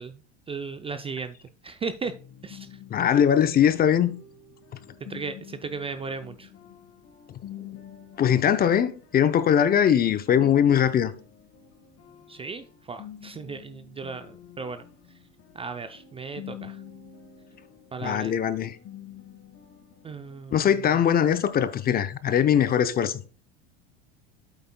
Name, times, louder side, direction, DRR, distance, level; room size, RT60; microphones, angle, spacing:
voice 1, 0.0-2.1 2.4-2.8 5.0-6.5 12.3-15.2 15.5-16.8 17.9-18.3 20.0-21.0, right 4 dB, 15° right, 0.4 m, -36 dB
sound 1, 2.0-20.8, left 10 dB, 45° left, 1.5 m, -48 dB
voice 2, 2.9-4.1 8.2-11.1 18.0-18.8 20.5-23.2, left 9 dB, 25° left, 0.6 m, -21 dB
8.3 x 8.1 x 2.2 m
hypercardioid pair, 100°, 34 cm